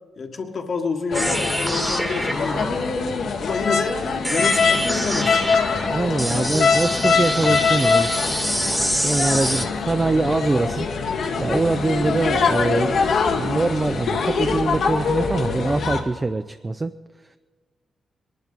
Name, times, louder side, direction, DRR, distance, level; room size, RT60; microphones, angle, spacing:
voice 1, 0.2-2.9 3.4-4.0 4.3-5.4 6.3-6.6 9.6-9.7, left 4 dB, 55° left, 4 dB, 1.5 m, -28 dB
sound 1, 1.1-16.0, left 5 dB, 75° left, 1.5 m, -23 dB
sound 2, 1.1-9.7, equal, 5° right, 1.2 m, -27 dB
voice 2, 5.8-8.3 8.6-10.9 11.4-13.0 13.3-17.0, right 3 dB, 25° right, 9 dB, 0.4 m, -23 dB
21.5 x 11.5 x 4.0 m, 1.4 s
cardioid pair, 100°, 0 cm